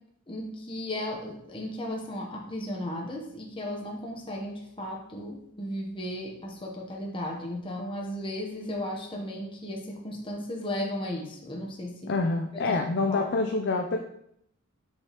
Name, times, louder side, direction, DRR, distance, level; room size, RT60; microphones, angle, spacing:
voice 1, 0.3-12.2 12.7-12.8 13.1-13.3, left 1 dB, 25° left, 0 dB, 0.9 m, -35 dB
voice 2, 12.1-14.0, left 3 dB, 50° left, 3 dB, 0.5 m, -26 dB
7.4 x 4.9 x 3.0 m, 0.74 s
head